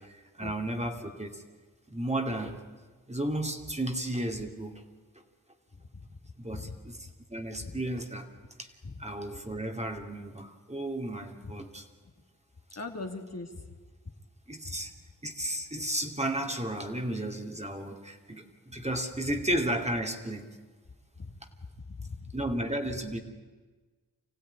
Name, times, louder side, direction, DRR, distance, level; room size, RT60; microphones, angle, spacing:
voice 1, 0.0-1.4 1.9-2.6 3.1-4.9 6.4-8.3 8.6-8.7 9.0-11.8 14.5-14.9 15.2-20.5 22.3-23.2, right 1 dB, 20° right, 4 dB, 2.5 m, -33 dB
voice 2, 12.8-13.7 14.6-14.7 21.2-21.3 21.9-22.3, left 3 dB, 45° left, 4 dB, 2.3 m, -40 dB
25.5 x 16.0 x 9.9 m, 1.4 s
cardioid pair, 55°, 36 cm